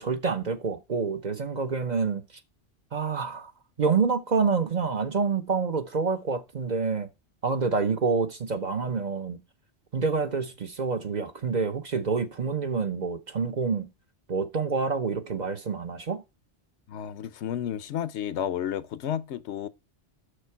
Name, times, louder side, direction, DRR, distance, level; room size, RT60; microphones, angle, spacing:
voice 1, 0.0-2.2 2.9-3.5 3.8-7.1 7.4-9.4 9.9-13.9 14.3-16.2, right 5 dB, 45° right, 0.8 m, -27 dB
voice 2, 16.9-19.7, left 10 dB, 80° left, 0.9 m, -32 dB
6.6 x 6.6 x 4.4 m
omnidirectional pair, 1.2 m